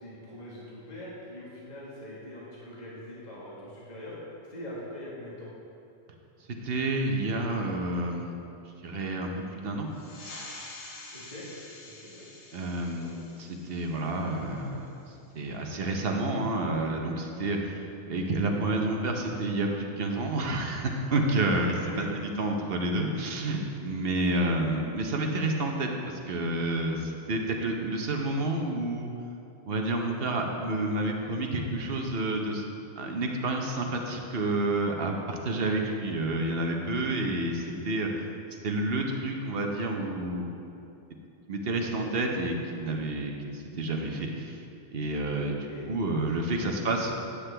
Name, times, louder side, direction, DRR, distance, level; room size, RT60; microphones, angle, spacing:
voice 1, 0.0-4.1 4.5-5.5 11.1-11.4 11.8-12.3 12.8-13.1 21.9-22.0 23.9-24.0 24.3-24.5 45.6-45.9 46.3-46.7, left 1 dB, 35° left, -7 dB, 1.7 m, -43 dB
voice 2, 6.6-8.4 8.8-9.9 12.5-29.1 29.7-32.6 33.0-38.2 38.6-40.5 41.5-44.6 44.9-47.1, right 2 dB, 50° right, 2 dB, 0.9 m, -29 dB
sound 1, 9.9-15.0, left 2 dB, 60° left, 1.3 m, -47 dB
9.7 x 7.5 x 3.3 m, 2.7 s
omnidirectional pair, 1.4 m